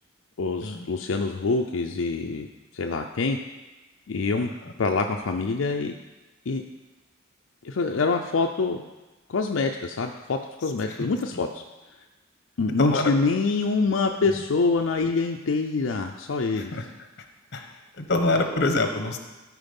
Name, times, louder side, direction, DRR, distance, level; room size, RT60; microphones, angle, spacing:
voice 1, 0.4-2.5 2.7-3.4 4.1-4.5 4.8-5.9 6.5-6.6 7.6-8.8 9.3-11.6 12.6-16.8, left 4 dB, 85° left, 3 dB, 0.5 m, -25 dB
voice 2, 12.8-13.1 16.6-16.8 17.5-17.7 18.0-19.2, left 2 dB, 60° left, 5 dB, 1.1 m, -25 dB
13.0 x 4.7 x 5.3 m, 1.1 s
head